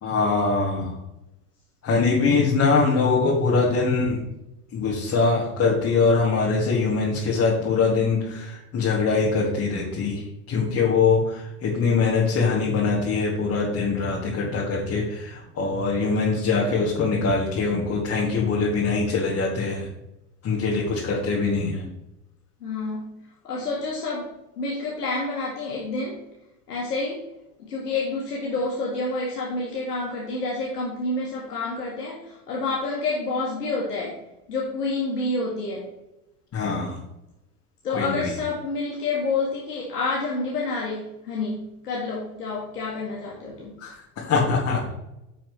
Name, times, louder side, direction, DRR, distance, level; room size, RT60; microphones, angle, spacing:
voice 1, 0.0-0.9 1.8-4.2 4.7-19.9 20.4-21.9 36.5-37.0 37.9-38.3 43.8-45.0, left 4 dB, 35° left, -5 dB, 2.4 m, -23 dB
voice 2, 22.6-26.2 26.7-27.2 27.6-34.2 34.5-35.9 37.8-43.7, left 3 dB, 80° left, -3 dB, 1.8 m, -28 dB
11.0 x 5.8 x 3.3 m, 0.91 s
hypercardioid pair, 80°, 46 cm